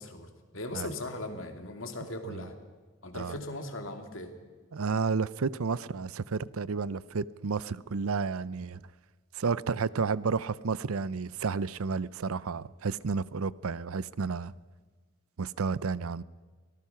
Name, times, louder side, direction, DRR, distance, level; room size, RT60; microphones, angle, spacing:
voice 1, 0.0-2.6 3.0-4.3, left 2 dB, 65° left, 2.6 m, -39 dB
voice 2, 4.7-8.8 9.3-14.5 15.4-16.2, right 5 dB, 80° right, 0.6 m, -31 dB
24.5 x 19.0 x 5.8 m
head